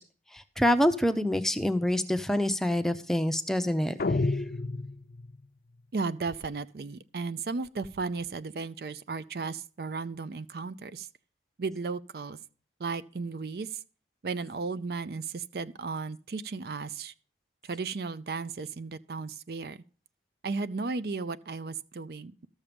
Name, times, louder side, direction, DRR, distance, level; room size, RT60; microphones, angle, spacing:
voice 1, 0.3-4.2, left 1 dB, ahead, 0.5 m, -26 dB
sound 1, 4.0-5.5, left 3 dB, 55° left, 0.5 m, -30 dB
voice 2, 5.9-11.1 11.6-12.4 12.8-13.8 14.2-17.1 17.6-19.8 20.4-22.5, right 4 dB, 60° right, 0.4 m, -35 dB
13.0 x 7.3 x 5.1 m
head